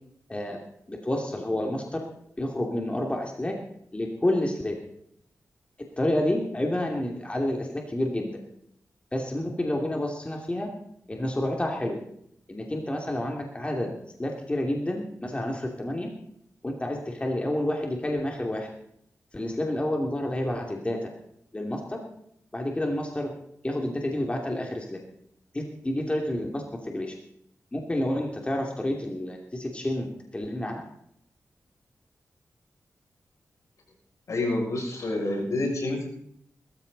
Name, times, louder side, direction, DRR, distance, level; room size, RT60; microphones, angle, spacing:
voice 1, 0.9-2.0 2.4-3.5 3.9-4.7 6.0-8.4 9.1-10.7 11.1-12.0 12.5-13.9 14.2-16.1 16.6-18.7 19.3-21.1 21.5-22.0 22.5-23.3 23.6-25.0 25.5-27.1 27.7-30.1 30.3-30.8, left 1 dB, 20° left, 1 dB, 2.7 m, -29 dB
voice 2, 34.3-36.1, left 2 dB, 70° left, -1 dB, 6.7 m, -28 dB
21.0 x 14.0 x 4.1 m, 0.71 s
cardioid pair, 75°, 6 cm